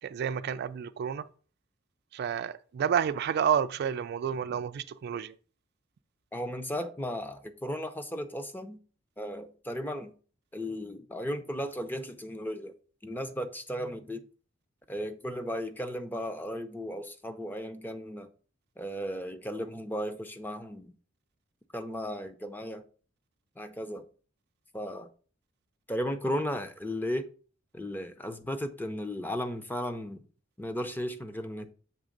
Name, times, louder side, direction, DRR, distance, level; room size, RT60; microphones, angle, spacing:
voice 1, 0.0-1.3 2.1-5.3, right 8 dB, 55° right, 0.3 m, -30 dB
voice 2, 6.3-8.8 9.2-10.1 10.5-12.7 13.0-14.2 14.9-18.3 18.8-20.9 21.7-22.8 23.6-24.1 24.7-25.1 25.9-27.3 27.7-30.2 30.6-31.7, equal, 10° left, 0.6 m, -35 dB
7.3 x 3.3 x 5.1 m
head